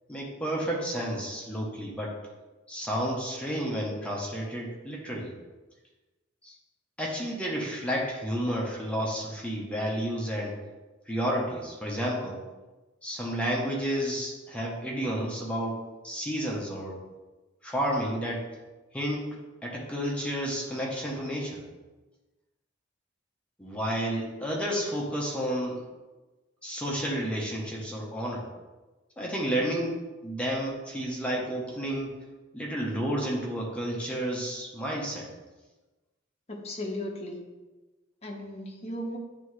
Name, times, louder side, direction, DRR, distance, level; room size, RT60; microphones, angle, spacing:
voice 1, 0.1-2.2 2.7-5.3 6.4-6.5 7.0-10.6 11.1-12.4 13.0-17.0 17.6-18.5 18.9-19.3 19.6-21.6 23.6-25.8 26.6-28.4 29.2-32.2 32.5-35.3, equal, 5° left, -3 dB, 1.0 m, -31 dB
voice 2, 36.5-37.4 38.2-39.2, left 1 dB, 35° left, 0 dB, 0.9 m, -36 dB
9.2 x 3.5 x 3.2 m, 1.2 s
head